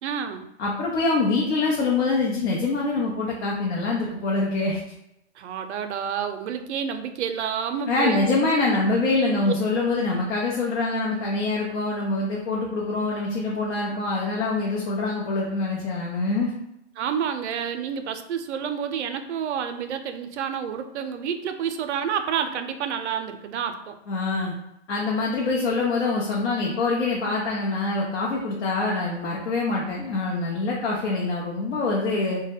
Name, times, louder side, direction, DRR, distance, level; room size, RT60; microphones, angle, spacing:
voice 1, 0.0-0.5 5.4-8.8 9.2-9.5 17.0-24.0, right 7 dB, 70° right, 7 dB, 0.5 m, -29 dB
voice 2, 0.6-4.8 7.9-16.5 24.1-24.5 24.9-32.4, left 3 dB, 70° left, -3 dB, 0.7 m, -25 dB
2.2 x 2.1 x 3.4 m, 0.83 s
hypercardioid pair, 130°, 35 cm